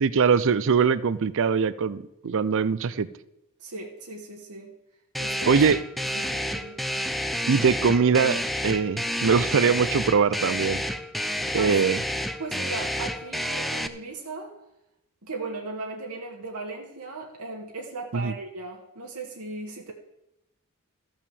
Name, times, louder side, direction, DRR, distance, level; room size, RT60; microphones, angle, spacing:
voice 1, 0.0-3.1 5.5-5.8 7.5-10.8 11.5-12.0 18.1-18.3, right 5 dB, 60° right, 17 dB, 0.5 m, -22 dB
voice 2, 3.6-4.7 5.2-5.6 6.1-6.8 11.3-11.9 12.4-14.5 15.2-19.9, right 3 dB, 80° right, 0 dB, 1.7 m, -37 dB
sound 1, 5.1-13.9, equal, ahead, 0.5 m, -30 dB
14.0 x 5.6 x 7.0 m, 0.85 s
head